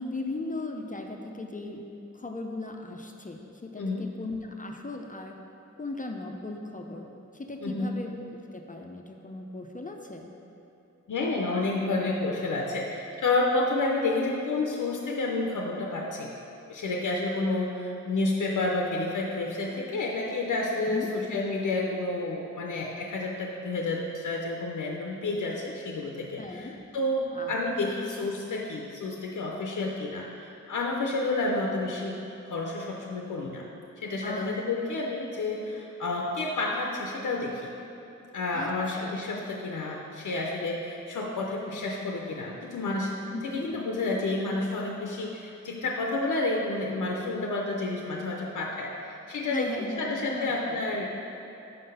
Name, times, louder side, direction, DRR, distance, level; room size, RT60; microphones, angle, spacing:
voice 1, 0.0-1.9 2.1-5.4 5.8-7.0 7.3-10.3 20.9-21.1 26.4-26.8 27.3-27.5 27.8-27.9 34.2-34.5 38.5-39.1 43.3-43.7 49.5-50.8, left 2 dB, 25° left, 2 dB, 0.4 m, -37 dB
voice 2, 7.6-7.9 11.1-16.3 16.7-32.2 32.5-33.7 34.0-37.7 38.3-43.1 43.4-51.1, left 2 dB, 90° left, -1 dB, 0.5 m, -30 dB
5.4 x 3.8 x 5.4 m, 2.8 s
wide cardioid pair, 55°, 30 cm